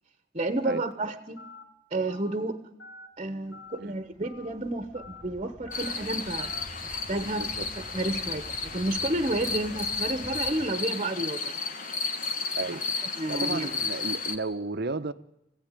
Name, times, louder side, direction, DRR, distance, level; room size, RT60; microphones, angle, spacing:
voice 1, 0.3-1.4 1.9-2.6 3.2-6.5 6.8-7.5 7.9-11.5 12.7-12.8 13.2-13.7, right 2 dB, 35° right, 1.2 m, -31 dB
Telephone, 0.6-0.9 1.4-1.6 2.1-2.3 2.8-3.1 3.5-3.8 4.2-4.5 4.9-5.2 5.7-5.9 6.4-6.6, left 3 dB, 80° left, 3.2 m, -46 dB
sound 1, 3.7-10.7, equal, ahead, 2.1 m, -48 dB
sound 2, 5.7-14.4, left 4 dB, 45° left, 1.7 m, -33 dB
voice 2, 13.3-15.1, right 3 dB, 60° right, 0.9 m, -33 dB
25.5 x 16.5 x 9.1 m
head